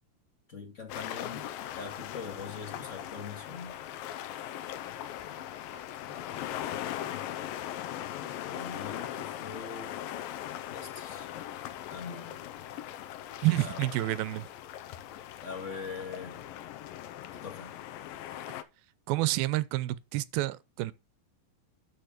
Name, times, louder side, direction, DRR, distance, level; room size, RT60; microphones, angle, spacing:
voice 1, 0.5-3.8 5.3-7.3 8.2-9.9 10.7-11.3 11.9-12.4 13.5-13.9 15.4-16.4 17.3-17.7, left 5 dB, 30° left, 1.4 m, -43 dB
Mt. Desert Island, 0.9-18.6, left 12 dB, 80° left, 2.5 m, -40 dB
voice 2, 13.4-14.5 19.1-20.9, right 18 dB, 85° right, 2.4 m, -29 dB
12.0 x 5.1 x 5.0 m
omnidirectional pair, 4.2 m